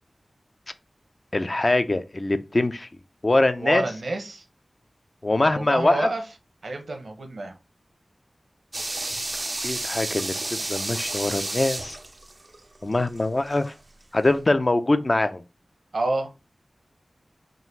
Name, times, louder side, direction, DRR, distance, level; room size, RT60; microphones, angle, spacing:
voice 1, 1.3-2.9 3.2-3.8 5.2-6.1 9.6-12.0 12.8-13.7 14.1-15.4, left 2 dB, 45° left, 0.4 m, -23 dB
voice 2, 3.6-4.4 5.5-6.2 6.6-7.6 15.9-16.3, right 2 dB, 85° right, 0.8 m, -28 dB
sound 1, 8.7-13.7 14.0-14.1, right 2 dB, 45° right, 0.3 m, -31 dB
3.9 x 2.4 x 4.0 m
wide cardioid pair, 55°, 0 cm